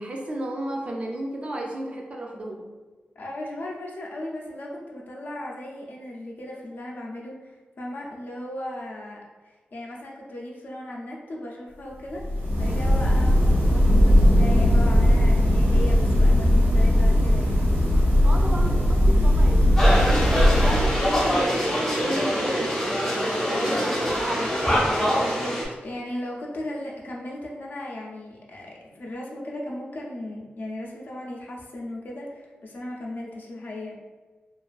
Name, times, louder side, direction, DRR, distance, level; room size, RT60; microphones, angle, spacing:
voice 1, 0.0-2.7 18.2-24.8, right 1 dB, 35° right, 0 dB, 0.3 m, -33 dB
voice 2, 3.2-9.2 9.4-12.2 12.6-17.8 23.5-23.8 25.2-25.6 25.8-33.9, left 1 dB, 60° left, -2 dB, 0.4 m, -36 dB
sound 1, 12.1-21.3, equal, 65° right, 0.6 m, -19 dB
sound 2, 19.8-25.7, equal, 10° left, 0.6 m, -24 dB
2.4 x 2.3 x 2.3 m, 1.3 s
wide cardioid pair, 165°, 4 cm